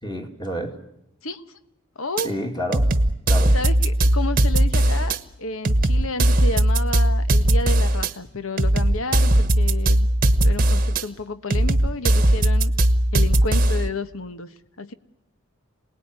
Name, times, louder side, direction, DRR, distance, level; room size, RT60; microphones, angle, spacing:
voice 1, 0.0-0.8 2.2-2.9 3.3-3.6, equal, 20° left, 3 dB, 2.7 m, -29 dB
voice 2, 1.2-1.6 2.0-2.3 3.5-10.1 10.4-12.7 13.1-14.9, left 2 dB, 70° left, 11 dB, 1.3 m, -31 dB
sound 1, 2.2-2.3 2.7-5.2 5.6-8.1 8.6-11.0 11.5-13.9, right 1 dB, 40° right, 1.1 m, -18 dB
27.5 x 19.0 x 9.8 m, 0.82 s
head